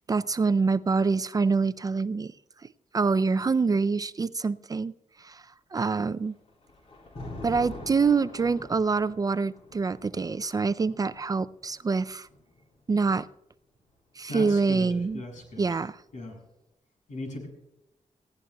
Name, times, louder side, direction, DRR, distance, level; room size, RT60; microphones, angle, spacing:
voice 1, 0.1-2.3 2.6-4.9 5.2-5.4 5.7-6.3 7.4-12.3 12.9-13.3 14.2-15.2 15.6-16.0, right 4 dB, 30° right, 14 dB, 0.4 m, -26 dB
Thunder, 6.0-13.1 14.2-15.9, left 2 dB, 55° left, 3.9 m, -46 dB
voice 2, 14.3-14.9 15.1-15.7 16.1-16.4 17.1-17.5, left 1 dB, 80° left, 2 dB, 6.5 m, -37 dB
22.0 x 16.0 x 2.3 m, 0.87 s
wide cardioid pair, 115°, 13 cm